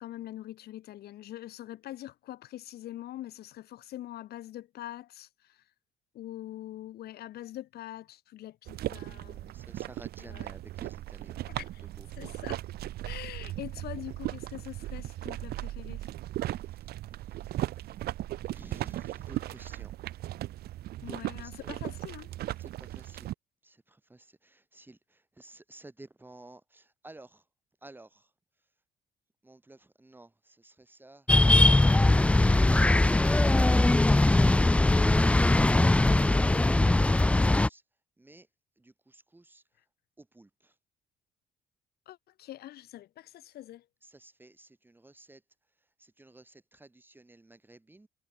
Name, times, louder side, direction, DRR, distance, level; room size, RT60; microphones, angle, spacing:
voice 1, 0.0-5.6 6.1-9.5 10.2-10.5 11.4-11.9 12.2-12.6 13.0-16.1 21.0-22.3 42.1-43.9, left 14 dB, 70° left, 2.8 m, -44 dB
sound 1, 8.7-23.3, right 14 dB, 70° right, 1.0 m, -37 dB
voice 2, 8.8-12.3 16.6-16.9 17.2-18.0 18.4-19.9 21.0-21.7 22.6-23.3 23.6-27.4 27.8-28.3 29.4-31.3 38.2-38.5 38.8-39.6 40.2-40.8 44.0-45.4 46.0-48.1, right 2 dB, 10° right, 4.0 m, -54 dB
sound 2, 31.3-37.7, left 2 dB, 5° left, 0.4 m, -21 dB
cardioid pair, 110°, 17 cm